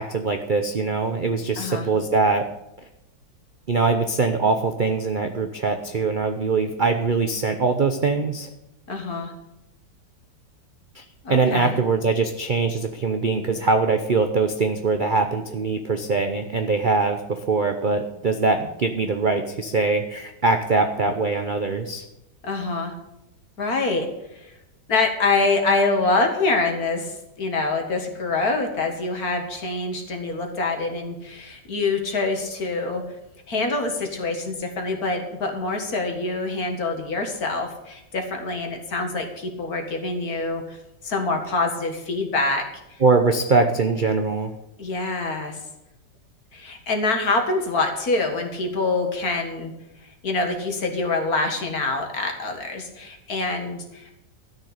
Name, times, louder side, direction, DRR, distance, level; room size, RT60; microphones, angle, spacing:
voice 1, 0.0-2.5 3.7-8.5 10.9-11.0 11.3-22.0 43.0-44.5, right 4 dB, 50° right, 6 dB, 0.6 m, -22 dB
voice 2, 1.6-1.9 8.9-9.3 11.2-11.8 22.4-22.9 23.6-24.1 24.4-24.5 24.9-33.0 33.5-40.8 41.0-42.6 44.8-45.6 46.5-49.7 50.2-54.1, left 3 dB, 55° left, 4 dB, 2.2 m, -25 dB
12.5 x 6.7 x 8.2 m, 0.87 s
omnidirectional pair, 2.0 m